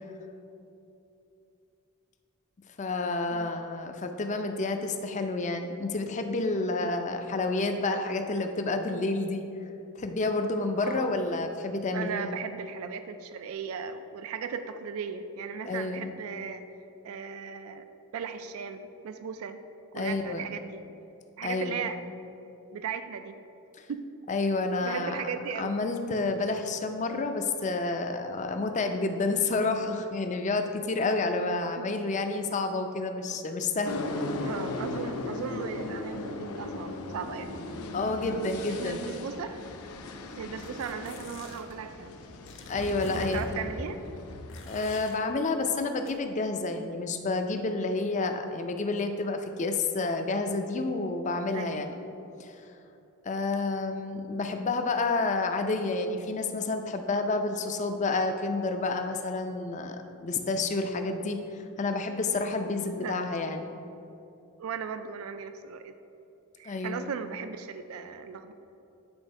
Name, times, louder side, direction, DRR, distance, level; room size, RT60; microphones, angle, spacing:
voice 1, 2.8-9.4 10.0-12.4 15.7-16.1 19.9-20.4 21.4-21.8 24.3-25.2 25.6-34.0 37.9-39.1 42.7-43.4 44.7-51.9 52.4-52.6 53.2-63.7 66.6-67.1, left 3 dB, 35° left, 6 dB, 0.4 m, -29 dB
voice 2, 10.8-11.1 11.9-16.6 17.0-17.8 18.1-19.6 19.9-20.8 21.4-22.0 22.7-23.4 23.9-24.1 24.8-25.7 31.8-31.9 34.3-37.5 38.7-39.6 40.4-42.2 43.1-44.0 51.5-51.9 63.0-63.2 64.6-65.9 66.6-68.5, right 6 dB, 70° right, 9 dB, 0.3 m, -37 dB
sound 1, 33.9-44.8, left 2 dB, 80° left, 0.6 m, -37 dB
sound 2, 40.6-41.7 42.5-43.5 44.5-45.2 46.1-46.2, left 5 dB, 55° left, 0.8 m, -49 dB
8.8 x 3.5 x 5.3 m, 2.8 s
head